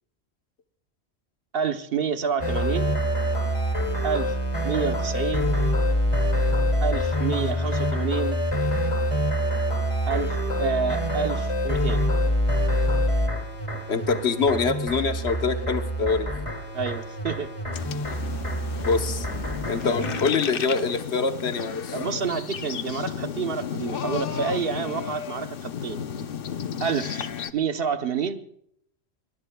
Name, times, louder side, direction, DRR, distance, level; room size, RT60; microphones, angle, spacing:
voice 1, 1.5-2.9 4.0-4.3 4.6-5.5 6.8-8.4 10.1-12.0 16.7-17.5 21.9-26.0 26.8-28.4, right 6 dB, 60° right, 9 dB, 1.1 m, -28 dB
sound 1, 2.4-20.2, equal, 30° left, 2.3 m, -25 dB
voice 2, 13.9-16.3 18.8-19.3 19.7-21.9, left 4 dB, 75° left, 7 dB, 1.3 m, -25 dB
sound 2, 17.7-27.5, left 8 dB, 60° left, 0.9 m, -33 dB
24.0 x 22.0 x 2.3 m, 0.69 s
omnidirectional pair, 1.1 m